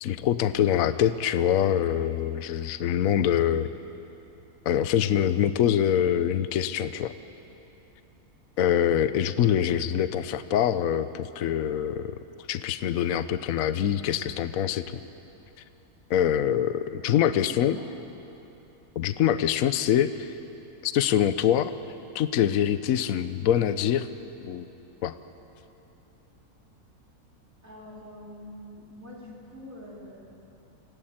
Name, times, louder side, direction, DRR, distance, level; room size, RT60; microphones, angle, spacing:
voice 1, 0.0-3.7 4.6-7.1 8.6-12.2 12.5-15.0 16.1-17.8 19.0-20.3 20.8-21.7 22.1-24.1 24.4-24.7 25.0-25.1, left 10 dB, 65° left, 12 dB, 1.1 m, -24 dB
voice 2, 17.1-17.9 27.6-30.2, left 1 dB, 55° right, -5 dB, 4.3 m, -44 dB
26.5 x 17.0 x 8.8 m, 3.0 s
omnidirectional pair, 1.7 m